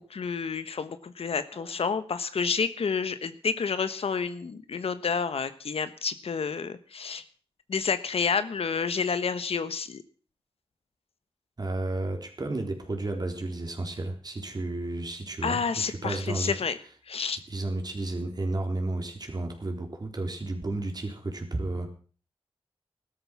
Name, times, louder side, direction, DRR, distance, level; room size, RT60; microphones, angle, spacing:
voice 1, 0.0-7.2 7.7-10.0 15.4-16.8 17.0-17.4, left 5 dB, 90° left, 13 dB, 1.2 m, -29 dB
voice 2, 11.6-15.6 15.9-16.5 17.5-21.9, right 2 dB, 45° right, 4 dB, 3.7 m, -32 dB
15.5 x 13.0 x 6.0 m, 0.41 s
wide cardioid pair, 80°, 10 cm